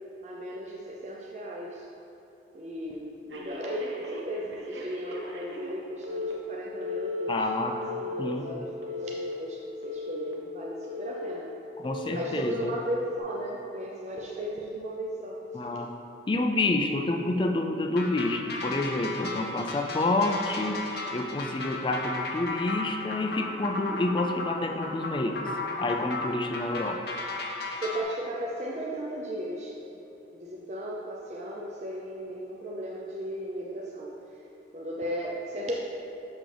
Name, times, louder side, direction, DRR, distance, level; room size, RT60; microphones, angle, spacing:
voice 1, 0.2-1.9 2.5-11.5 12.1-15.4 27.8-29.7 30.3-34.4 34.7-35.8, equal, 35° right, -3 dB, 0.5 m, -36 dB
Telephone, 3.3-5.8 6.0-6.3 6.8-7.3 7.8-8.3 8.8-9.3 9.8-10.3 10.8-11.3 11.8-12.4 12.8-13.2, left 3 dB, 80° right, 0.8 m, -37 dB
voice 2, 7.3-7.8 8.2-8.4 11.8-12.7 15.5-15.9 16.3-20.8 21.1-25.5 25.8-27.0, left 2 dB, 25° left, 4 dB, 0.3 m, -28 dB
sound 1, 18.0-28.0, left 3 dB, 55° left, 0.8 m, -35 dB
6.3 x 6.0 x 3.3 m, 2.9 s
head